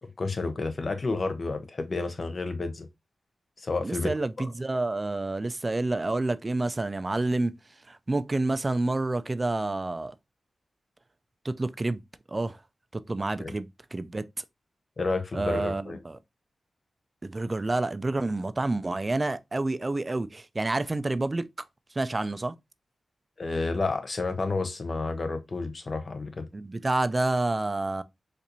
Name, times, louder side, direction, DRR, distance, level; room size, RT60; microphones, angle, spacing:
voice 1, 0.0-2.9 3.6-4.1 4.4-4.5 13.4-13.5 15.0-16.0 23.4-26.5, left 3 dB, 55° left, 0.6 m, -30 dB
voice 2, 3.8-7.6 7.9-10.1 11.4-12.0 12.3-12.6 12.9-13.7 13.9-14.2 15.3-16.2 17.2-21.5 22.0-22.5 26.5-28.0, right 2 dB, 35° right, 0.3 m, -28 dB
4.2 x 2.5 x 2.7 m
cardioid pair, 50°, 0 cm